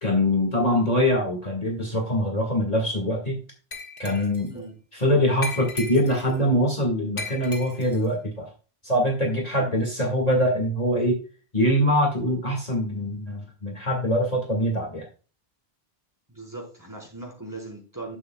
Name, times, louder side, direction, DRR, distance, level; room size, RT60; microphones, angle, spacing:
voice 1, 0.0-3.4 4.0-4.5 4.9-8.5 8.8-11.2 11.5-15.0, equal, 40° left, 0 dB, 2.1 m, -23 dB
Glass, 3.7-4.5 5.4-6.4 7.2-8.1, left 3 dB, 85° left, 2.1 m, -36 dB
voice 2, 16.3-18.2, right 2 dB, 20° right, -1 dB, 4.3 m, -39 dB
11.0 x 8.7 x 2.3 m, 0.36 s
omnidirectional pair, 1.1 m